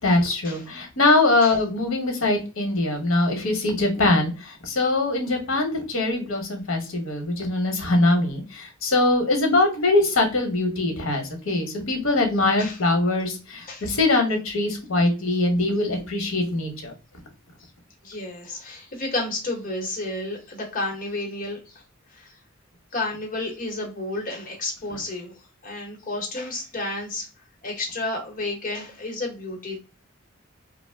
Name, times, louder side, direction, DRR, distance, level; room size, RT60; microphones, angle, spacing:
voice 1, 0.0-16.9, left 2 dB, 70° left, 3 dB, 0.9 m, -22 dB
voice 2, 18.0-21.8 22.1-22.3 22.9-27.3 27.6-29.8, left 2 dB, 40° left, 1 dB, 0.9 m, -31 dB
2.5 x 2.0 x 3.2 m, 0.30 s
head